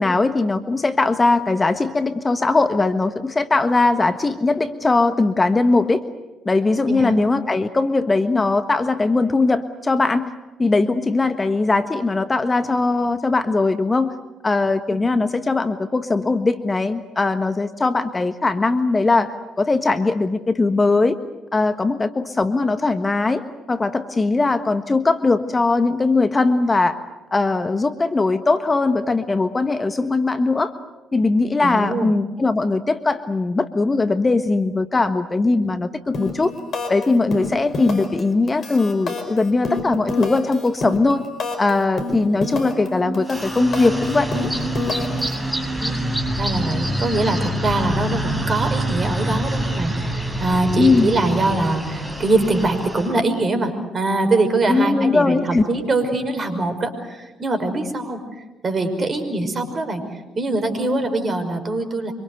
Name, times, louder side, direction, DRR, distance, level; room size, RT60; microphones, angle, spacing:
voice 1, 0.0-6.0 6.4-10.3 10.6-14.1 14.4-19.3 19.6-21.2 21.5-23.4 23.7-27.0 27.3-30.7 31.1-36.5 36.9-41.3 41.6-44.3 50.8-51.1 54.7-55.6, left 3 dB, 25° left, 10 dB, 1.4 m, -20 dB
voice 2, 31.6-32.1 45.8-46.0 46.4-62.1, right 2 dB, 40° right, 6 dB, 5.5 m, -23 dB
sound 1, 36.1-36.4 36.7-37.0 37.3-38.2 38.5-41.7 42.0-42.9 43.1-45.3, left 3 dB, 50° left, 5.3 m, -27 dB
sound 2, 42.6-50.1, right 2 dB, 70° right, 3.4 m, -34 dB
sound 3, 43.2-53.1, equal, ahead, 7.1 m, -26 dB
26.0 x 24.0 x 8.1 m, 1.1 s
hypercardioid pair, 50°, 0 cm